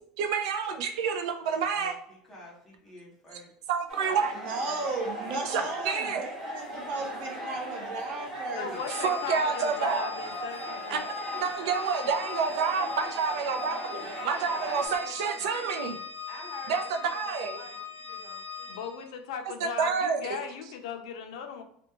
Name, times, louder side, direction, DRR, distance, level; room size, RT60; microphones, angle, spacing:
voice 1, 0.2-2.0 3.7-4.3 5.4-6.2 9.0-10.0 10.9-16.0 16.7-17.6 19.6-20.2, right 6 dB, 80° right, 5 dB, 0.4 m, -29 dB
voice 2, 1.7-3.5 4.0-5.7 14.4-15.7 16.3-18.8, left 1 dB, 10° left, -4 dB, 1.1 m, -47 dB
sound 1, 3.9-14.9, right 1 dB, 15° right, 1.1 m, -38 dB
voice 3, 4.3-8.8, right 3 dB, 55° right, 0 dB, 0.7 m, -35 dB
voice 4, 8.6-11.1 18.7-21.6, left 6 dB, 85° left, 6 dB, 0.4 m, -37 dB
Organ, 8.7-19.1, left 7 dB, 35° left, 0.5 m, -40 dB
2.5 x 2.1 x 2.9 m, 0.66 s
supercardioid pair, 155°, 3 cm